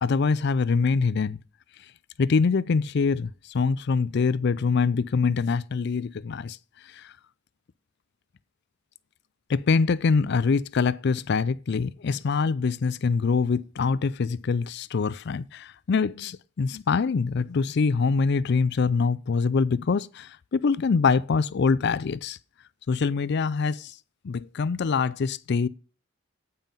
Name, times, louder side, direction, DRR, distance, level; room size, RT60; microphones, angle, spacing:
voice 1, 0.0-1.4 2.2-6.6 7.0-7.1 9.5-22.4 22.9-23.9 24.2-25.7, left 5 dB, 55° left, 0.4 m, -24 dB
8.9 x 5.6 x 5.5 m
head